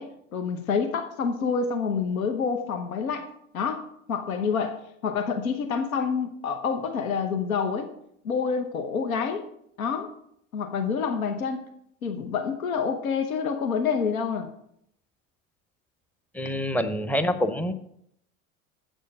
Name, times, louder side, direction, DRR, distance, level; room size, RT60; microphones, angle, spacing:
voice 1, 0.0-3.2 3.5-4.8 5.0-7.9 8.2-9.4 9.8-10.1 10.5-11.6 12.0-14.5, left 6 dB, 80° left, 6 dB, 1.0 m, -27 dB
voice 2, 16.3-17.7, equal, 5° left, 10 dB, 0.6 m, -26 dB
8.2 x 6.4 x 5.4 m, 0.73 s
figure-of-eight pair, 75°, 41 cm